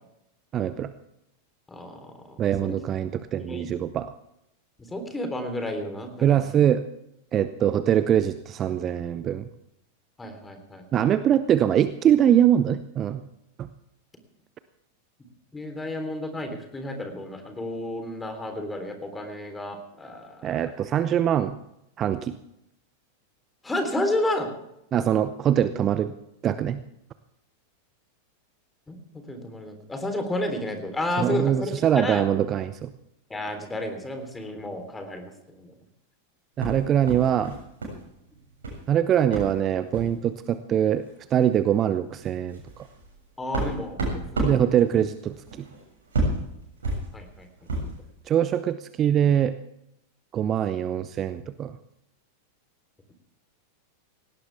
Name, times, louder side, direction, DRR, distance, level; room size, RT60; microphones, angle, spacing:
voice 1, 0.5-0.9 2.4-4.1 6.2-6.8 7.3-9.5 10.9-13.2 13.6-13.7 20.4-21.6 22.0-22.3 24.9-26.1 26.4-26.8 31.2-32.9 36.6-37.6 38.9-41.0 41.3-42.9 44.4-45.6 48.3-49.5 50.3-51.7, right 10 dB, 30° right, 13 dB, 0.7 m, -23 dB
voice 2, 1.7-2.8 3.4-3.7 4.8-6.7 10.2-11.1 15.5-20.5 23.6-24.5 28.9-32.3 33.3-35.7 43.4-44.6 47.1-47.5 47.8-48.0, left 1 dB, 10° left, 6 dB, 3.6 m, -32 dB
sound 1, 36.6-38.0 38.3-38.8 39.3-39.5 39.9-40.1 41.0-41.1 41.5-41.6 42.1-48.0, right 2 dB, 65° right, 7.3 m, -31 dB
19.0 x 17.5 x 3.5 m, 0.82 s
figure-of-eight pair, 90°, 0 cm